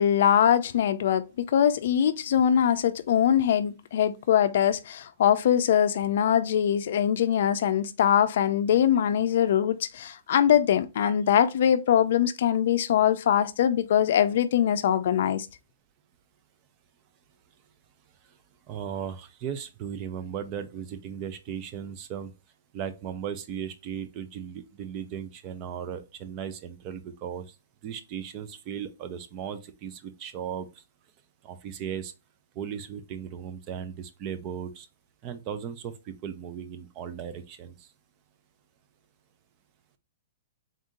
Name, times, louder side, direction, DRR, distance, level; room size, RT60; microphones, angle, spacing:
voice 1, 0.0-15.5, left 9 dB, 50° left, 0.5 m, -22 dB
voice 2, 18.7-22.3 22.7-27.5 27.8-30.8 31.4-32.1 32.6-34.9 35.2-37.9, right 8 dB, 25° right, 0.4 m, -36 dB
3.7 x 2.6 x 3.7 m
hypercardioid pair, 170°, 0 cm